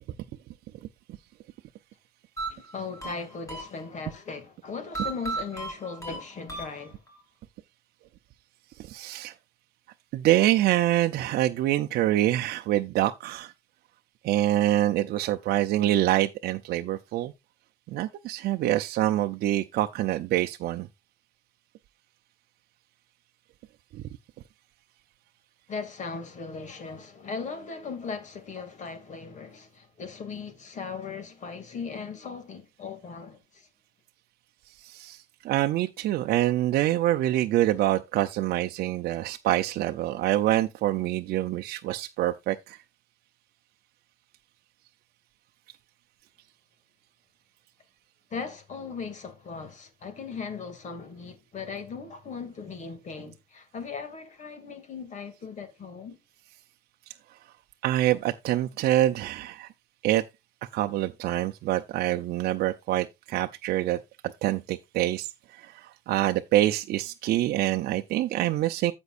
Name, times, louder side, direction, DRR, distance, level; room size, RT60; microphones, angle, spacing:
sound 1, 2.4-4.2 4.9-7.2, right 3 dB, 20° left, 5.4 m, -36 dB
voice 1, 2.5-7.0 25.7-33.7 48.3-56.2, left 5 dB, 45° left, 2.5 m, -38 dB
voice 2, 8.8-9.3 10.1-13.5 14.2-17.3 17.9-20.9 23.9-24.0 34.8-42.8 57.1-57.2 57.8-59.7 60.0-60.2 60.7-64.0 64.4-68.9, right 14 dB, 70° right, 0.6 m, -26 dB
15.0 x 5.3 x 2.5 m
cardioid pair, 110°, 17 cm